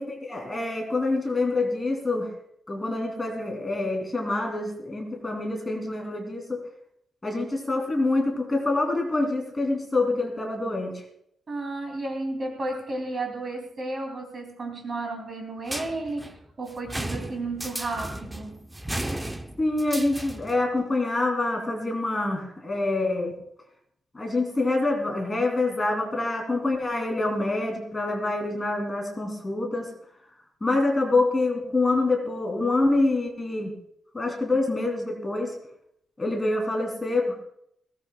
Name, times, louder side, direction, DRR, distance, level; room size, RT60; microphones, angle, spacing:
voice 1, 0.0-2.3 2.7-6.6 7.2-10.9 19.6-23.3 24.1-29.9 30.6-33.7 34.1-35.5 36.2-37.4, left 2 dB, 15° left, 1 dB, 2.9 m, -26 dB
voice 2, 11.5-18.7, right 2 dB, 30° right, 3 dB, 2.7 m, -33 dB
sound 1, 15.7-20.6, right 1 dB, 10° right, 0.7 m, -35 dB
21.0 x 17.5 x 2.3 m, 0.72 s
wide cardioid pair, 175°, 0 cm